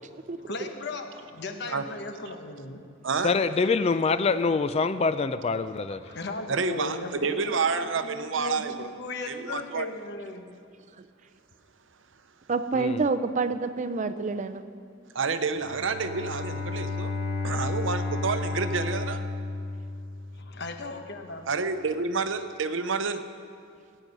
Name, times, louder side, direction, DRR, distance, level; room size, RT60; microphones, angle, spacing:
voice 1, 0.4-2.8 6.0-10.6 20.3-21.5, left 3 dB, 60° left, 6 dB, 1.1 m, -37 dB
voice 2, 3.2-6.0 12.8-13.0, left 4 dB, 30° left, 12 dB, 0.3 m, -25 dB
voice 3, 6.5-8.7 9.3-9.9 15.1-17.1 17.4-19.2 21.5-23.2, right 4 dB, 70° right, 10 dB, 0.7 m, -29 dB
voice 4, 12.5-14.6, right 4 dB, 40° right, 10 dB, 0.5 m, -27 dB
Bowed string instrument, 15.5-20.5, left 3 dB, 80° left, 3.8 m, -32 dB
17.0 x 9.1 x 5.4 m, 2.3 s
head